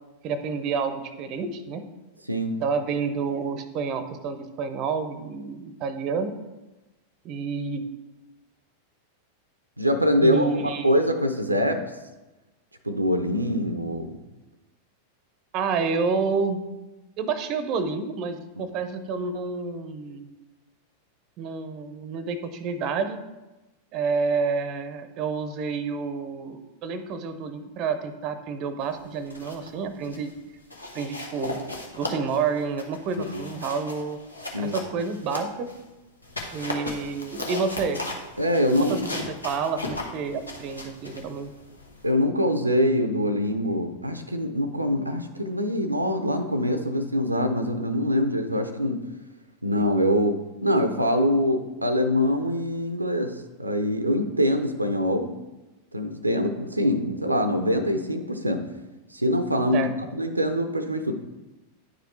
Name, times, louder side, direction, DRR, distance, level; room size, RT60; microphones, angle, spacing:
voice 1, 0.2-1.8 2.6-6.3 7.2-7.8 10.2-10.9 15.5-16.6 17.2-20.3 21.4-23.2 23.9-30.3 30.9-31.6 32.0-34.2 34.6-35.7 36.5-38.0 38.9-41.5 59.7-59.9, right 5 dB, 40° right, 10 dB, 0.6 m, -29 dB
voice 2, 2.3-2.6 9.8-10.5 10.8-11.8 12.8-14.1 18.6-18.7 33.3-33.4 34.5-34.7 38.4-39.0 42.0-49.0 49.6-55.3 55.9-58.7 59.1-61.1, equal, 85° right, 7 dB, 0.5 m, -24 dB
sound 1, 29.1-29.7 30.0-30.3 30.7-35.8 36.2-42.1, left 2 dB, 80° left, 1.0 m, -37 dB
9.9 x 4.9 x 3.2 m, 1.1 s
figure-of-eight pair, 90°, 0 cm